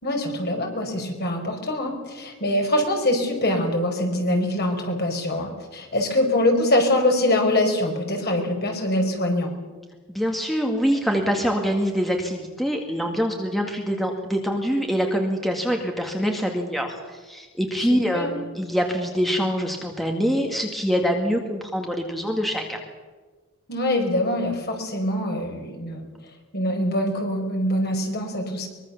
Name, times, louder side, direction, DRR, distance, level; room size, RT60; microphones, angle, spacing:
voice 1, 0.0-9.5 17.9-18.3 23.7-26.1 26.5-28.7, left 1 dB, 45° left, 3 dB, 5.0 m, -24 dB
voice 2, 10.1-22.8, equal, ahead, 2 dB, 1.9 m, -24 dB
23.5 x 22.5 x 7.1 m, 1.3 s
head